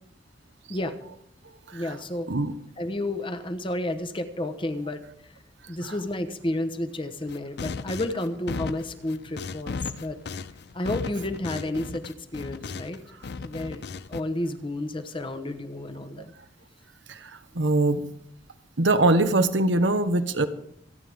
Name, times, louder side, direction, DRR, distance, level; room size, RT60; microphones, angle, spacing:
voice 1, 1.7-2.3 2.8-5.0 5.7-10.2 10.7-13.0 13.4-13.8 14.1-16.3, left 1 dB, 30° left, 9 dB, 1.0 m, -31 dB
sound 1, 7.3-13.0 13.2-14.2, left 4 dB, 60° left, 0.5 m, -36 dB
voice 2, 17.1-18.0 18.8-20.5, right 2 dB, 80° right, 9 dB, 1.1 m, -22 dB
27.0 x 9.5 x 3.5 m, 0.71 s
head